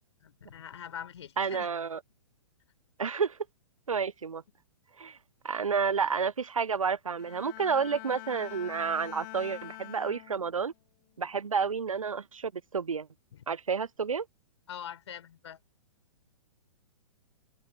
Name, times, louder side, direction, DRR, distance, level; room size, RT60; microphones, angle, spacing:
voice 1, 0.2-1.7 13.3-13.4 14.7-15.6, left 9 dB, 55° left, 4.2 m, -43 dB
voice 2, 1.4-2.0 3.0-3.4 3.9-4.4 5.0-5.2 5.4-10.7 11.2-13.1 13.5-14.3, right 6 dB, 80° right, 0.5 m, -30 dB
Bowed string instrument, 7.2-10.7 11.2-11.6, left 24 dB, 40° left, 3.3 m, -45 dB
figure-of-eight pair, 115°, 17 cm